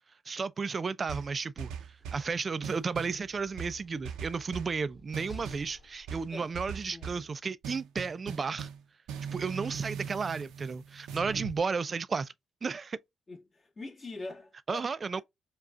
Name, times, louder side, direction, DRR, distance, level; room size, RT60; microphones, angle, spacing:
voice 1, 0.3-1.7 2.1-8.7 9.3-12.3 12.6-13.0 14.7-15.2, right 5 dB, 35° right, 0.4 m, -33 dB
sound 1, 1.1-2.3 2.6-3.2 3.6-4.8 5.1-5.7 6.1-7.3 7.6-8.8 9.1-11.6, right 7 dB, 85° right, 0.6 m, -40 dB
Slam, 2.0-6.5, right 2 dB, 15° left, 1.6 m, -53 dB
voice 2, 6.9-7.3 13.3-14.8 15.1-15.2, left 3 dB, 35° left, 1.9 m, -44 dB
4.8 x 2.3 x 2.4 m
cardioid pair, 90°, 0 cm